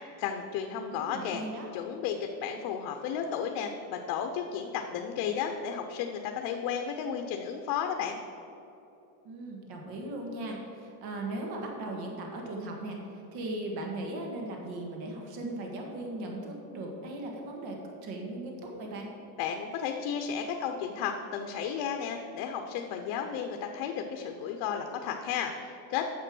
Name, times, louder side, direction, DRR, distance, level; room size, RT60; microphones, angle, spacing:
voice 1, 0.2-1.4 1.7-8.2 19.4-26.1, left 7 dB, 85° left, 4 dB, 0.8 m, -33 dB
voice 2, 0.9-1.7 9.2-19.1, right 1 dB, 75° right, 1 dB, 1.8 m, -38 dB
9.7 x 6.9 x 6.2 m, 2.9 s
cardioid pair, 155°, 38 cm